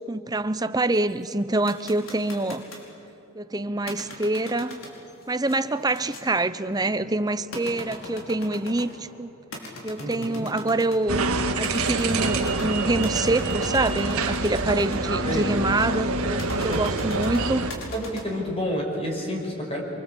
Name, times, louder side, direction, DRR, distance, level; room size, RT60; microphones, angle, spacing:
voice 1, 0.1-2.7 3.3-4.8 5.3-9.3 9.8-11.3 11.5-17.7, right 2 dB, 15° right, 0.7 m, -26 dB
sound 1, 0.9-2.9 3.8-9.0 9.5-11.0 11.6-15.0 16.4-18.2, left 2 dB, 65° left, 5.2 m, -41 dB
voice 2, 10.0-10.5 15.2-15.6 16.7-16.8 17.9-19.8, equal, 25° left, 5.8 m, -29 dB
sound 2, 11.1-17.7, right 2 dB, 85° right, 1.8 m, -26 dB
28.0 x 24.5 x 8.4 m
head